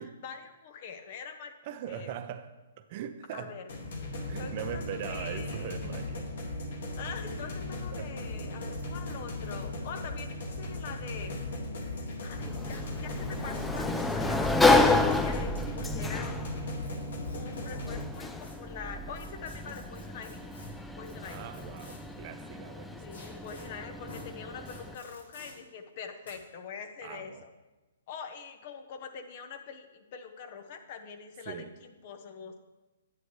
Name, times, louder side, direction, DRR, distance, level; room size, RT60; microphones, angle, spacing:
voice 1, 0.2-1.5 1.9-2.2 3.3-3.7 4.4-5.9 7.0-11.3 12.2-16.6 17.3-20.4 21.0-21.5 23.0-27.5 28.1-32.6, left 6 dB, 45° left, 6 dB, 0.9 m, -44 dB
voice 2, 1.6-2.5 2.8-3.6 4.3-6.3 7.9-8.1 19.6-19.8 21.3-23.2 27.0-27.4 31.5-31.7, right 9 dB, 45° right, 9 dB, 0.6 m, -40 dB
sound 1, 3.7-18.0, left 1 dB, 60° left, 1.8 m, -37 dB
sound 2, 8.0-8.1 8.3-8.4 8.7-8.8 9.1-10.5 11.1-12.3 12.7-12.8 13.2-13.6 14.7-15.6 16.8-18.5 19.1-22.1 23.1-23.6 24.1-24.2 24.6-25.5 26.2-26.3, left 2 dB, 75° left, 3.3 m, -51 dB
Sliding door, 12.3-24.9, left 2 dB, 5° left, 0.4 m, -30 dB
9.8 x 7.9 x 3.2 m, 1.1 s
figure-of-eight pair, 125°, 0 cm